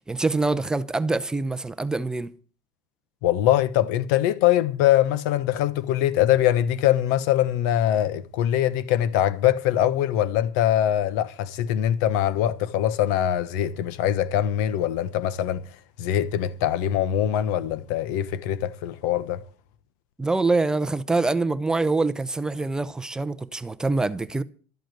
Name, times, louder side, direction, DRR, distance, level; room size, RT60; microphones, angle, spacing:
voice 1, 0.1-2.3 20.2-24.4, right 3 dB, 5° right, 0.7 m, -25 dB
voice 2, 3.2-15.6 16.0-19.4, left 11 dB, 80° left, 1.0 m, -23 dB
13.0 x 7.9 x 9.1 m
cardioid pair, 160°, 10 cm